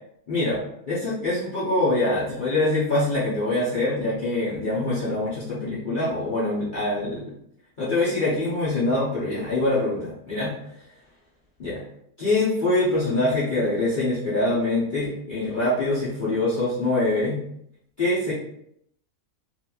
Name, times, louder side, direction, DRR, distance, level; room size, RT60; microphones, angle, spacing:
voice 1, 0.3-0.6 0.9-7.3 7.8-10.5 11.6-11.8 12.2-17.4 18.0-18.3, left 2 dB, 45° left, -11 dB, 0.8 m, -24 dB
2.9 x 2.6 x 2.3 m, 0.72 s
omnidirectional pair, 1.5 m